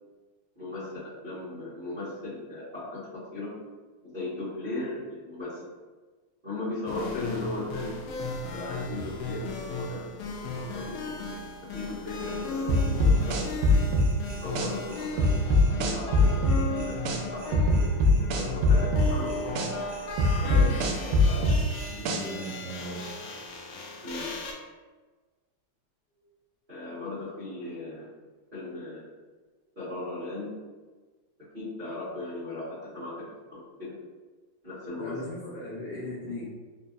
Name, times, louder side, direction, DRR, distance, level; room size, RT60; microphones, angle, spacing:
voice 1, 0.5-3.5 4.0-5.6 6.4-7.9 8.5-10.0 10.4-11.1 11.7-13.5 14.4-17.0 17.3-17.7 18.3-19.3 20.4-21.5 24.0-24.3 26.7-28.1 28.5-29.1 29.7-30.5 31.5-34.0 34.6-35.2 35.4-35.5, left 2 dB, 45° right, -15 dB, 0.6 m, -37 dB
sound 1, 6.9-24.5, left 2 dB, 90° left, 1.3 m, -36 dB
sound 2, 12.7-14.7 15.2-17.2 17.5-19.7 20.2-22.4, left 2 dB, 80° right, 1.8 m, -21 dB
voice 2, 21.8-23.1 35.0-36.4, equal, 70° left, -6 dB, 1.8 m, -38 dB
4.5 x 2.6 x 2.4 m, 1.3 s
omnidirectional pair, 3.3 m